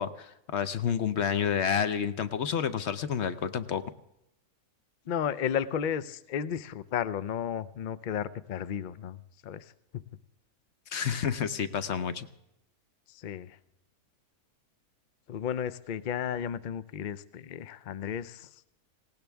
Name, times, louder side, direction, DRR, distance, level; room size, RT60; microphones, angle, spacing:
voice 1, 0.0-3.8 10.9-12.3, left 8 dB, 55° left, 11 dB, 0.9 m, -29 dB
voice 2, 5.1-10.1 13.1-13.6 15.3-18.6, left 8 dB, 75° left, 14 dB, 0.4 m, -33 dB
19.0 x 17.5 x 3.5 m, 0.86 s
omnidirectional pair, 1.6 m